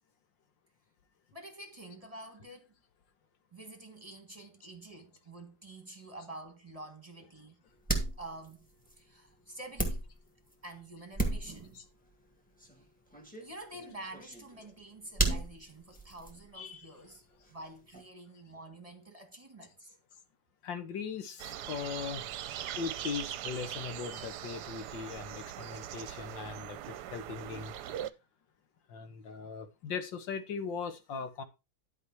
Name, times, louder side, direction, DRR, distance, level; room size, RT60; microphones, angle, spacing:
voice 1, 1.3-2.7 3.5-7.6 8.2-10.0 10.6-11.8 12.8-12.9 13.4-17.2 17.5-20.0, right 2 dB, 20° right, 1.6 m, -48 dB
sound 1, 7.9-10.9 11.1-11.8 12.1-12.3 12.6-16.5 17.0-18.0, right 2 dB, 5° left, 1.8 m, -35 dB
voice 2, 16.5-16.9 20.6-22.2 22.8-27.7 28.9-31.4, left 6 dB, 85° left, 2.0 m, -39 dB
sound 2, 21.4-28.1, right 11 dB, 70° right, 1.1 m, -41 dB
11.0 x 5.2 x 4.7 m
omnidirectional pair, 2.0 m